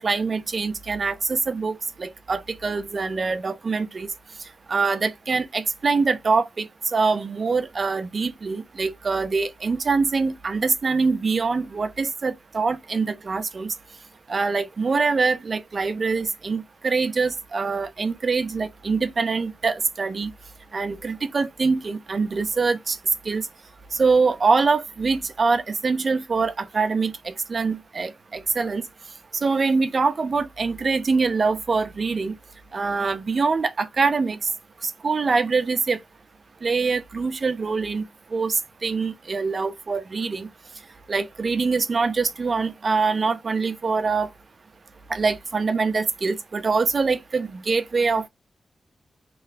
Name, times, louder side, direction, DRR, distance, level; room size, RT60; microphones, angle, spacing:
voice 1, 0.0-4.1 4.7-13.7 14.3-20.3 20.7-23.0 23.3-23.5 24.0-27.1 27.5-28.8 29.4-32.3 32.7-34.4 34.8-36.0 36.6-38.0 38.3-38.5 38.8-40.5 41.1-44.3 45.1-48.3, right 4 dB, 45° right, 0.6 m, -24 dB
3.1 x 2.1 x 4.0 m
wide cardioid pair, 115°, 0 cm